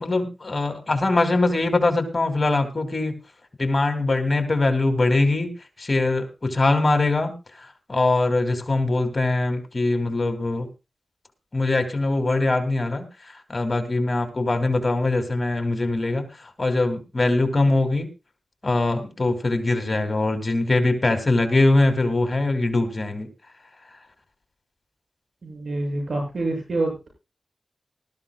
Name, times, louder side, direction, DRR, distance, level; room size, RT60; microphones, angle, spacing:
voice 1, 0.0-3.2 3.6-5.5 5.8-7.3 7.6-10.7 11.5-13.1 13.5-18.1 18.6-23.3, left 2 dB, 45° left, 6 dB, 2.8 m, -22 dB
voice 2, 25.4-27.1, right 2 dB, 75° right, 1 dB, 7.8 m, -27 dB
19.0 x 13.5 x 2.4 m, 0.28 s
cardioid pair, 50°, 0 cm